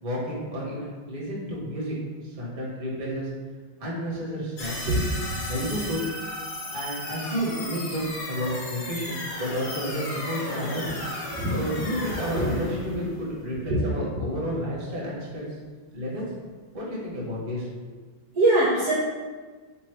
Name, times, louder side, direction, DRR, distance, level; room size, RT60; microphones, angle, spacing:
voice 1, 0.0-1.9 2.2-3.3 3.8-4.7 5.5-6.0 6.7-11.0 11.5-15.5 15.9-16.2 16.7-18.0, equal, 30° right, -5 dB, 1.1 m, -31 dB
sound 1, 4.6-13.8, left 2 dB, 60° left, 1.3 m, -35 dB
voice 2, 4.9-5.4 11.3-11.6 12.4-12.5 13.7-13.8 18.3-18.9, right 1 dB, 65° right, -6 dB, 1.1 m, -23 dB
3.5 x 3.0 x 4.5 m, 1.4 s
omnidirectional pair, 2.2 m